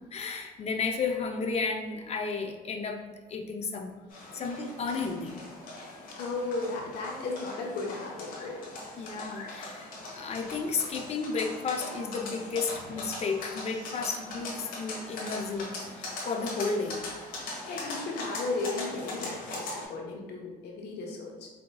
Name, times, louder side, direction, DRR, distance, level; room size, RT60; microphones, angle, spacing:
voice 1, 0.1-3.9 4.3-5.4 9.0-17.0, left 4 dB, 40° left, 3 dB, 0.6 m, -33 dB
sound 1, 4.1-19.8, left 2 dB, 55° left, 1.2 m, -40 dB
voice 2, 6.2-8.6 17.7-21.5, left 3 dB, 75° left, 0 dB, 1.0 m, -35 dB
4.7 x 3.7 x 2.2 m, 1.3 s
cardioid pair, 110°, 17 cm